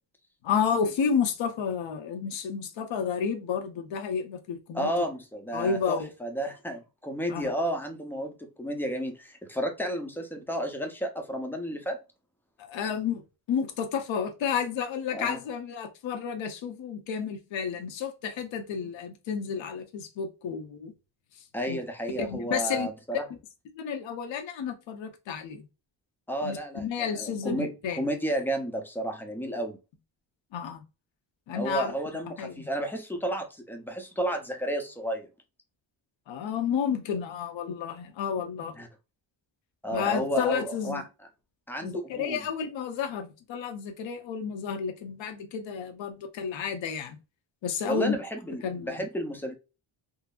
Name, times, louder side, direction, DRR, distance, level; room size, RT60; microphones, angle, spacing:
voice 1, 0.4-4.9 5.5-6.1 7.3-7.5 12.6-13.2 13.5-20.9 21.7-21.8 22.2-22.9 23.3-23.4 23.8-25.7 26.4-28.0 30.5-30.8 31.5-31.9 32.4-32.7 36.3-38.8 39.9-41.0 41.8-47.2 47.6-48.1 48.6-49.0, left 7 dB, 70° left, 0.8 m, -31 dB
voice 2, 4.7-12.0 15.1-15.4 21.5-23.2 26.3-29.8 31.5-35.3 38.8-38.9 39.8-41.0 41.7-42.5 47.8-49.5, right 1 dB, 5° left, 0.6 m, -32 dB
3.7 x 2.0 x 2.3 m
cardioid pair, 110°, 46 cm